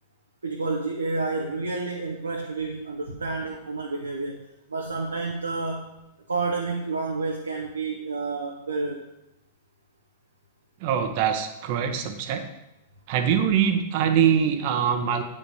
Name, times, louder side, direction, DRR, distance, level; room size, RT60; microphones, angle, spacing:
voice 1, 0.4-4.4 4.7-5.9 6.3-9.0, right 3 dB, 80° right, 0 dB, 0.9 m, -29 dB
voice 2, 10.8-12.4 13.1-15.2, right 8 dB, 50° right, 7 dB, 1.0 m, -23 dB
8.6 x 5.5 x 4.9 m, 0.89 s
figure-of-eight pair, 100°, 0 cm